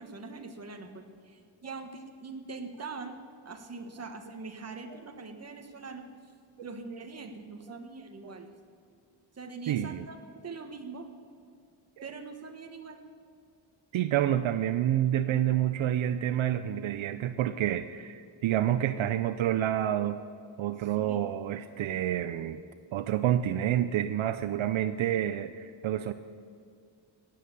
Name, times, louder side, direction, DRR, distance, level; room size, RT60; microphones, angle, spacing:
voice 1, 0.0-3.2 3.4-6.1 6.6-8.5 9.3-11.1 12.0-13.0 20.8-21.2, right 4 dB, 30° right, 5 dB, 1.5 m, -43 dB
voice 2, 9.7-10.0 12.0-12.1 13.9-20.2 20.6-22.6 22.9-26.1, right 11 dB, 75° right, 11 dB, 0.6 m, -28 dB
16.0 x 9.6 x 6.9 m, 2.3 s
wide cardioid pair, 130°, 48 cm